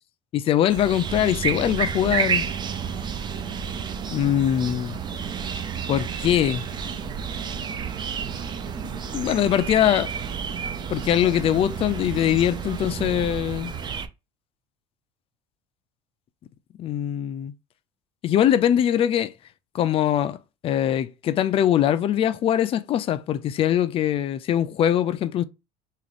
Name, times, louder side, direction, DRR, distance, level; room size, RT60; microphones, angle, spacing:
voice 1, 0.3-2.5 4.1-5.0 5.9-6.6 9.1-10.1 10.9-13.7 16.8-17.5 18.2-19.3 19.7-20.4 20.6-25.4, left 10 dB, 35° left, 0.4 m, -22 dB
sound 1, 0.7-14.1, right 6 dB, 30° right, 0.4 m, -31 dB
sound 2, 1.0-13.3, right 7 dB, 55° right, 0.9 m, -37 dB
3.6 x 2.5 x 3.4 m
cardioid pair, 120°, 15 cm